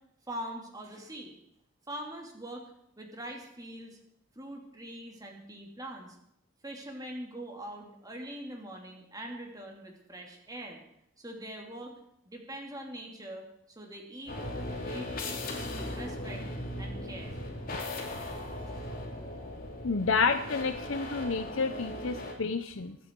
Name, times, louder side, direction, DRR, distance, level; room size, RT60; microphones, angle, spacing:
voice 1, 0.3-1.4 1.9-2.6 3.0-4.0 4.3-6.2 6.6-10.8 11.2-11.9 12.3-13.4 13.8-15.4 15.7-16.4 16.8-17.4 18.7-18.9, right 1 dB, 20° right, 1 dB, 2.8 m, -43 dB
sound 1, 14.3-22.3, left 1 dB, 45° left, 2.8 m, -38 dB
voice 2, 19.8-23.0, left 4 dB, 80° left, 7 dB, 0.8 m, -29 dB
23.0 x 9.3 x 4.7 m, 0.73 s
head